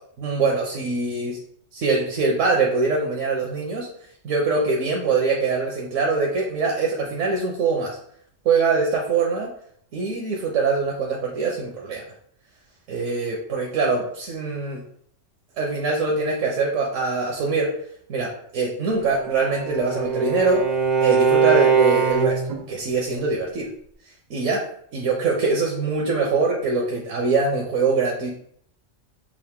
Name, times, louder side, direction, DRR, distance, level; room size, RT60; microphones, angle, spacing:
voice 1, 0.2-1.4 1.7-3.9 4.2-8.0 8.4-9.5 9.9-12.0 12.9-14.8 15.6-17.7 18.1-20.6 21.0-22.4 22.7-23.7 24.3-24.6 24.9-28.3, right 4 dB, 75° right, -1 dB, 1.1 m, -23 dB
Bowed string instrument, 19.0-22.6, right 6 dB, 50° right, 0.5 m, -21 dB
4.9 x 2.5 x 3.6 m, 0.66 s
omnidirectional pair, 1.3 m